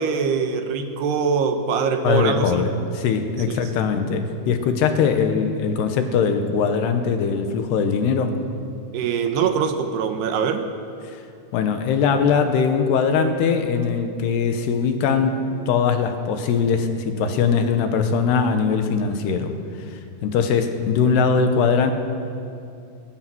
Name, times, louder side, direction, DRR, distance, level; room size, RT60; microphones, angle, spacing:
voice 1, 0.0-2.7 3.5-3.7 8.9-10.7, right 6 dB, 75° right, 6 dB, 3.1 m, -23 dB
voice 2, 2.0-8.4 11.5-15.4 15.7-19.6 20.2-21.9, left 6 dB, 70° left, 6 dB, 3.2 m, -21 dB
23.0 x 19.5 x 6.2 m, 2.5 s
omnidirectional pair, 5.1 m